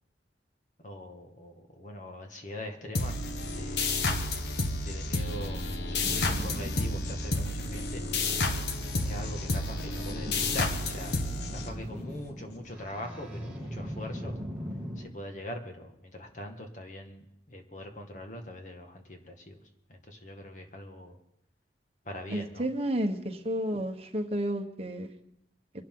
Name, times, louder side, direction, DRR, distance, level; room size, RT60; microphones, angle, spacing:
voice 1, 0.8-3.2 3.5-4.3 4.8-8.0 9.0-11.2 11.5-14.4 15.0-19.6 19.9-21.2 22.0-22.7, left 1 dB, 45° left, 3 dB, 1.8 m, -42 dB
sound 1, 2.9-12.2, left 2 dB, 75° left, 1.2 m, -31 dB
Boat Water vehicle, 6.0-15.1, equal, 5° right, 2.2 m, -41 dB
voice 2, 22.3-25.1, right 1 dB, 35° right, 4 dB, 1.3 m, -31 dB
24.0 x 12.0 x 3.9 m, 0.80 s
head